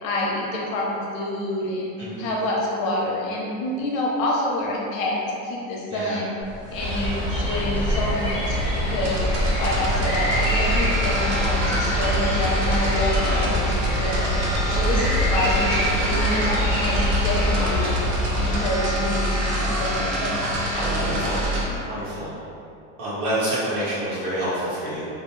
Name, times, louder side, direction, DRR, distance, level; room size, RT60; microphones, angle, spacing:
voice 1, 0.0-6.3 6.7-9.2 9.6-14.3 14.7-16.5 16.8-18.0 18.4-20.3 20.6-21.8, left 1 dB, 75° left, -3 dB, 0.7 m, -28 dB
voice 2, 5.9-6.2 13.2-13.5 15.5-15.7 17.6-17.7 20.7-21.4 21.8-22.3 23.0-25.1, right 1 dB, 45° right, -11 dB, 1.2 m, -28 dB
sound 1, 6.4-21.5, equal, 15° right, 1.3 m, -32 dB
sound 2, 6.7-18.6, equal, 15° left, 0.4 m, -25 dB
sound 3, 9.0-21.6, right 1 dB, 70° right, 0.7 m, -26 dB
2.4 x 2.3 x 3.1 m, 2.7 s
supercardioid pair, 165°, 39 cm